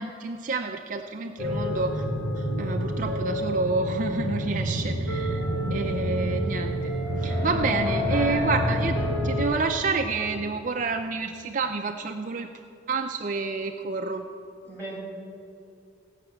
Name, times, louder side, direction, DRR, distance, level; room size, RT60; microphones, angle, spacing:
voice 1, 0.0-2.0 2.4-5.4 5.7-6.8 7.2-8.9 9.2-12.5 12.9-14.3, right 4 dB, 40° right, 4 dB, 0.4 m, -29 dB
sound 1, 1.4-9.5, equal, 80° left, 2.5 m, -28 dB
voice 2, 7.7-8.6 14.6-15.0, right 2 dB, 10° left, -6 dB, 3.3 m, -37 dB
16.0 x 5.8 x 7.7 m, 2.5 s
head